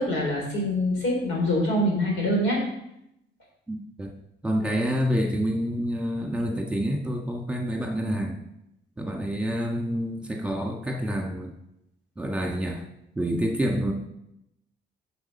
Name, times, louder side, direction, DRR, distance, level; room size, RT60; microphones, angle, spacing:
voice 1, 0.0-2.6, left 1 dB, 85° left, -1 dB, 3.7 m, -24 dB
voice 2, 3.7-4.1 4.4-8.4 9.0-11.5 12.2-12.8 13.1-13.9, equal, 5° right, 1 dB, 1.7 m, -27 dB
7.8 x 6.3 x 5.6 m, 0.80 s
cardioid pair, 90°, 20 cm